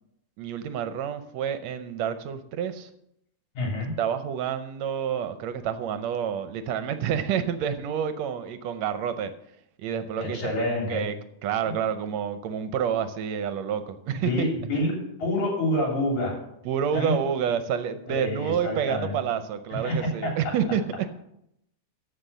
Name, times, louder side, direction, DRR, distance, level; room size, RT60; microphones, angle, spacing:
voice 1, 0.4-2.9 4.0-9.3 9.8-10.4 10.7-11.1 11.4-14.5 16.7-20.8, right 8 dB, 75° right, 10 dB, 1.9 m, -28 dB
voice 2, 3.5-3.9 10.2-11.0 11.6-11.7 14.1-16.4 16.9-17.1 18.1-19.2 19.7-20.5, left 1 dB, 80° left, -1 dB, 4.6 m, -28 dB
14.5 x 6.0 x 6.7 m, 0.78 s
omnidirectional pair, 3.3 m